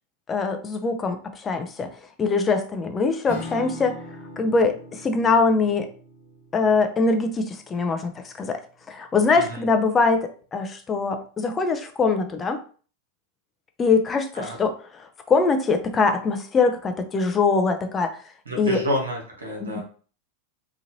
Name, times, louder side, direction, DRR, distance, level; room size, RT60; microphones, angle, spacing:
voice 1, 0.3-1.9 2.2-3.9 4.4-5.9 6.5-8.1 8.4-8.6 8.9-12.6 13.8-14.7 15.3-18.1 18.6-18.8 19.6-19.8, left 4 dB, 25° left, 6 dB, 0.5 m, -22 dB
Acoustic guitar / Strum, 3.3-8.7, left 2 dB, 70° left, 1.3 m, -42 dB
voice 2, 9.3-9.7 14.3-14.6 18.4-19.8, equal, 90° right, -2 dB, 1.1 m, -29 dB
3.0 x 2.4 x 2.7 m, 0.41 s
hypercardioid pair, 95°, 0 cm